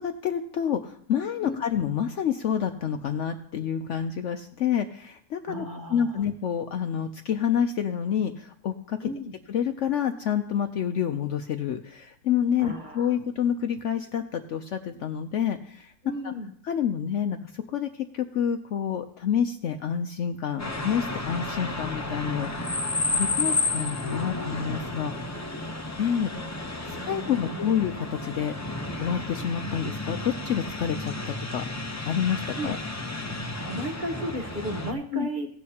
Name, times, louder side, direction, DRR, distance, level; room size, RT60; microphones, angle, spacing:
voice 1, 0.0-9.1 9.5-15.9 16.2-16.3 16.6-25.1 26.0-26.3 26.9-31.6 32.1-32.8 35.1-35.3, left 8 dB, 65° left, 7 dB, 0.8 m, -28 dB
voice 2, 1.4-1.8 5.5-6.1 9.0-9.4 12.6-13.2 16.0-16.5 23.0-23.2 23.7-24.7 26.8-27.8 29.7-29.8 32.6-32.7 33.6-35.5, right 1 dB, 35° right, 3 dB, 1.0 m, -35 dB
sound 1, 20.6-34.9, left 2 dB, 20° left, 0.5 m, -32 dB
17.0 x 8.1 x 2.9 m, 0.67 s
omnidirectional pair, 1.6 m